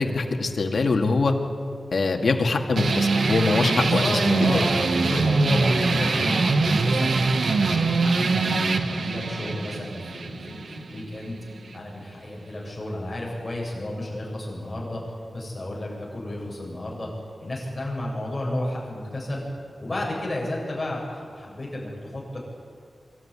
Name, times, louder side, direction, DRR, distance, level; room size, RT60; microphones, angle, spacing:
voice 1, 0.0-1.3 1.9-4.6, left 3 dB, 65° left, 3 dB, 2.0 m, -23 dB
sound 1, 2.8-11.8, right 3 dB, 75° right, 1.4 m, -23 dB
voice 2, 3.7-7.1 7.6-8.6 8.9-11.4 11.7-15.0 15.3-17.1 17.4-19.4 19.8-22.4, left 1 dB, 25° left, -4 dB, 7.7 m, -32 dB
24.5 x 13.5 x 9.9 m, 2.2 s
wide cardioid pair, 105°, 0 cm